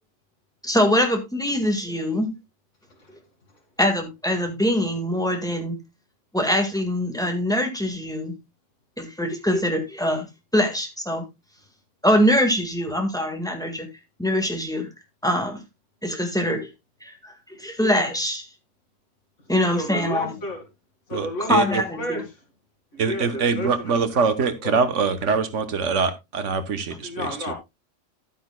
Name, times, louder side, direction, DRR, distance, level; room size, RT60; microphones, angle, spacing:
voice 1, 0.6-2.3 3.8-5.8 6.3-8.4 9.0-10.3 10.5-11.2 12.0-13.9 14.2-14.9 15.2-15.6 16.0-16.7 17.0-17.3 17.6-18.4 19.5-20.3 21.5-22.2, left 1 dB, 5° left, 1.6 m, -23 dB
voice 2, 19.7-20.6 21.1-22.2 22.9-23.9 24.6-24.8 27.0-27.5, left 1 dB, 85° left, 2.6 m, -32 dB
voice 3, 21.1-21.8 23.0-27.5, right 5 dB, 80° right, 1.4 m, -24 dB
11.5 x 9.1 x 2.2 m
omnidirectional pair, 1.2 m